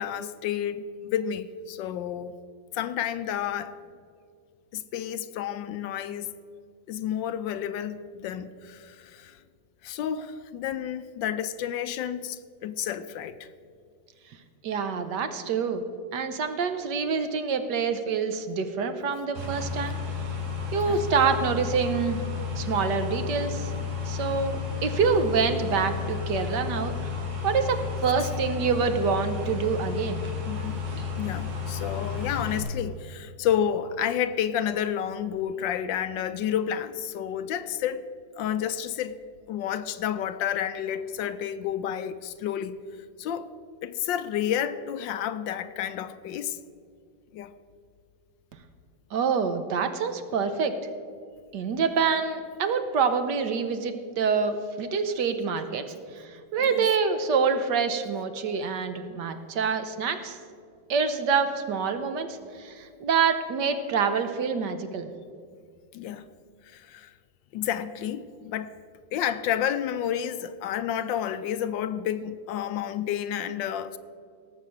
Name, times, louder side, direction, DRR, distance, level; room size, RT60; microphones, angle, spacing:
voice 1, 0.0-2.3 2.7-3.8 4.7-6.3 6.9-9.4 9.8-13.5 20.9-21.0 30.5-30.8 31.2-38.0 38.4-39.2 39.5-42.7 43.2-43.5 43.8-46.6 47.3-47.5 56.6-56.9 65.9-66.3 66.6-67.1 67.5-68.7 69.1-74.0, left 9 dB, 75° left, 1.2 m, -30 dB
voice 2, 14.6-15.8 16.1-20.0 20.7-22.2 22.6-23.7 24.0-26.9 27.4-30.2 49.1-50.7 51.5-55.8 56.1-60.4 60.9-65.1, right 5 dB, 65° right, 1.4 m, -26 dB
sound 1, 19.3-32.6, left 5 dB, 90° right, 2.9 m, -32 dB
18.0 x 7.3 x 6.4 m
omnidirectional pair, 2.1 m